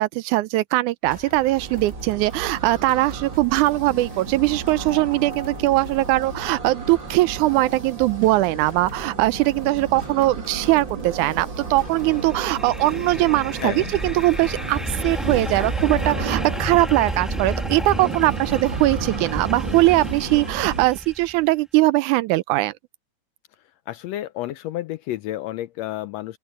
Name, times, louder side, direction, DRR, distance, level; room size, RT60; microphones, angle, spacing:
voice 1, 0.0-22.7, right 18 dB, 85° right, 2.1 m, -21 dB
sound 1, 1.0-18.4, left 2 dB, 20° left, 3.3 m, -43 dB
sound 2, 1.6-20.9, right 5 dB, 40° right, 3.1 m, -33 dB
sound 3, 12.2-21.3, equal, ahead, 1.1 m, -31 dB
voice 2, 13.6-13.9 23.9-26.4, left 14 dB, 80° left, 1.6 m, -30 dB
open air
omnidirectional pair, 3.4 m